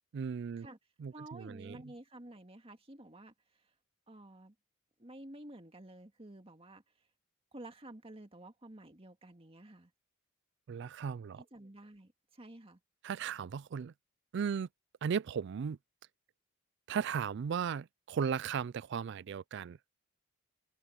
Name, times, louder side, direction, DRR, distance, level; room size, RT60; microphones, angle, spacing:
voice 1, 0.1-0.7 1.0-1.8 10.7-11.4 13.0-13.9 14.3-14.7 15.0-15.8 16.9-19.8, right 7 dB, 60° right, 0.3 m, -36 dB
voice 2, 1.1-3.3 4.1-4.5 5.0-6.8 7.5-9.9 11.4-12.8, right 1 dB, 30° right, 2.1 m, -51 dB
head